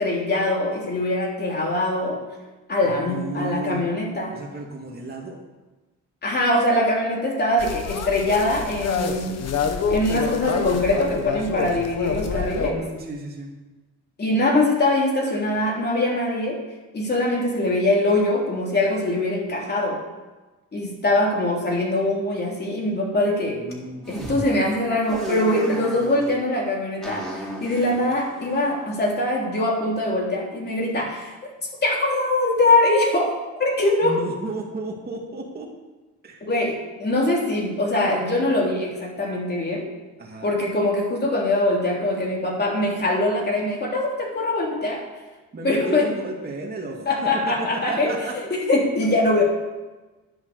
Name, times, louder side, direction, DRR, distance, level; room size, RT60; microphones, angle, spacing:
voice 1, 0.0-2.2 2.7-4.3 6.2-9.4 9.9-12.8 14.2-16.6 16.9-20.0 20.7-23.6 24.1-31.3 31.8-33.3 33.6-34.2 36.5-39.9 40.4-45.0 45.6-46.1 47.1-48.1 48.3-49.4, left 1 dB, 30° left, -2 dB, 3.4 m, -22 dB
voice 2, 2.8-3.9 4.3-5.4 12.6-13.6 23.4-24.4 34.0-35.7 36.2-36.5 40.2-40.5 45.5-48.4 49.0-49.1 49.4-49.5, right 2 dB, 30° right, -1 dB, 2.3 m, -33 dB
sound 1, 7.6-12.7, left 6 dB, 55° left, 1.5 m, -27 dB
sound 2, 24.0-24.4 25.1-26.3 27.0-29.4, equal, ahead, 4.6 m, -35 dB
10.5 x 10.5 x 6.8 m, 1.2 s
cardioid pair, 130°, 31 cm